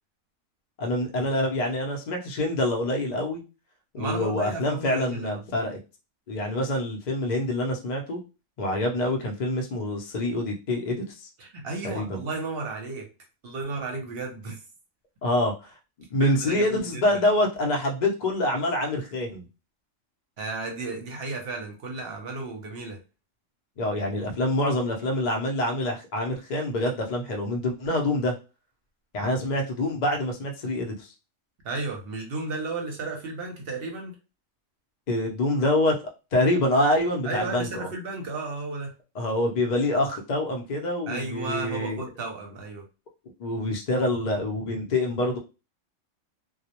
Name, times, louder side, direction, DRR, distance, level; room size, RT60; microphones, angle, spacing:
voice 1, 0.8-3.4 3.9-5.8 6.3-8.2 8.6-11.3 11.8-12.2 15.2-15.5 16.1-19.4 23.8-28.3 29.1-31.1 35.1-36.0 36.3-37.9 39.2-42.0 43.4-45.4, left 1 dB, 50° left, 0.5 m, -26 dB
voice 2, 4.0-5.4 11.4-13.1 13.4-14.6 16.2-17.0 20.4-23.0 31.6-34.1 37.2-38.9 41.1-42.8, right 3 dB, 55° right, 0.8 m, -33 dB
2.2 x 2.0 x 2.8 m
omnidirectional pair, 1.3 m